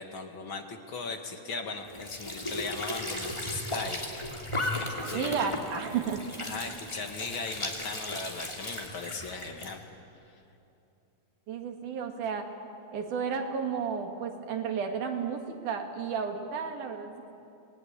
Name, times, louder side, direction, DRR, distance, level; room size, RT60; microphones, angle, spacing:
voice 1, 0.0-4.3 4.7-5.4 6.4-9.8, left 4 dB, 45° left, 4 dB, 2.2 m, -38 dB
Squeak / Sink (filling or washing) / Trickle dribble, 1.8-9.8, left 1 dB, 10° left, 2.3 m, -36 dB
voice 2, 5.1-6.2 11.5-12.5 12.9-17.3, right 6 dB, 70° right, 4 dB, 3.3 m, -32 dB
29.0 x 19.0 x 9.6 m, 2.8 s
omnidirectional pair, 3.7 m